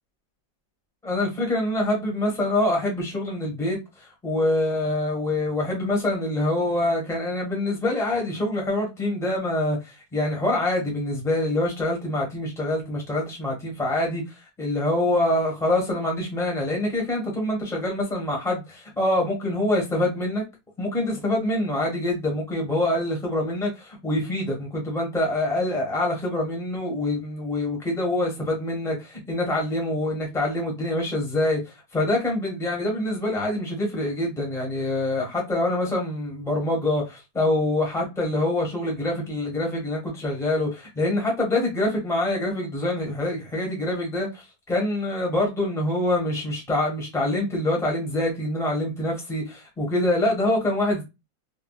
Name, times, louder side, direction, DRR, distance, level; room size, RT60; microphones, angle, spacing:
voice 1, 1.0-20.4 20.8-51.0, left 1 dB, ahead, 0.9 m, -25 dB
3.6 x 2.4 x 2.3 m
omnidirectional pair, 2.1 m